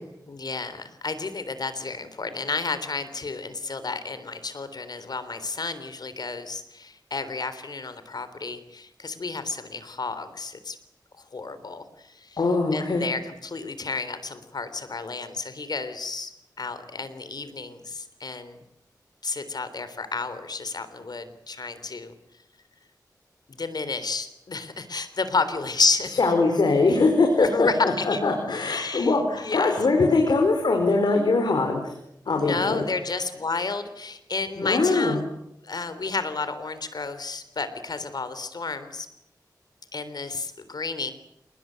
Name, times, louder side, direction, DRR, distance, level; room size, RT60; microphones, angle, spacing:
voice 1, 0.3-10.8 11.2-12.4 12.7-16.3 16.6-18.6 19.2-22.1 23.5-26.2 27.4-28.2 28.7-29.7 32.3-35.2 35.6-39.1 39.9-41.1, left 4 dB, 70° left, 11 dB, 3.6 m, -31 dB
voice 2, 12.4-13.1 26.2-27.7 28.1-31.9 32.3-32.8 34.6-35.2, left 3 dB, 90° left, 3 dB, 4.6 m, -22 dB
28.0 x 20.0 x 9.4 m, 0.80 s
wide cardioid pair, 65°, 7 cm